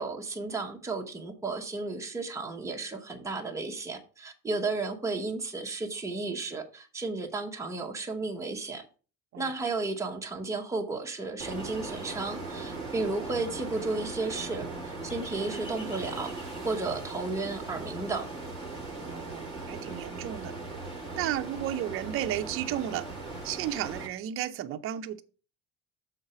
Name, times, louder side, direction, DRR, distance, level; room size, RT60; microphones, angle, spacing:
voice 1, 0.0-8.8 9.4-14.6 15.0-18.3, right 3 dB, 10° right, 0.9 m, -33 dB
Ocean, 11.4-24.1, right 3 dB, 15° left, 1.7 m, -39 dB
voice 2, 19.0-20.5 21.2-23.1 23.4-25.2, right 11 dB, 40° right, 0.6 m, -33 dB
7.1 x 4.0 x 6.6 m
cardioid pair, 175°, 33 cm